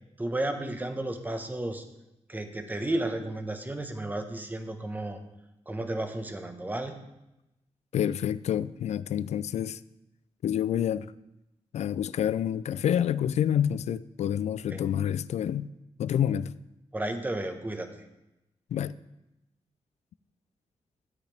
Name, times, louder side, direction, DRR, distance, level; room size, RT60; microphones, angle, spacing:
voice 1, 0.2-1.8 2.3-5.2 5.7-6.9 14.7-14.8 16.9-18.0, right 1 dB, 15° right, 1.1 m, -33 dB
voice 2, 7.9-9.8 10.4-11.1 11.7-15.7 16.0-16.5 18.7-18.9, left 9 dB, 80° left, 0.4 m, -28 dB
13.0 x 8.2 x 3.4 m
cardioid pair, 85°, 11 cm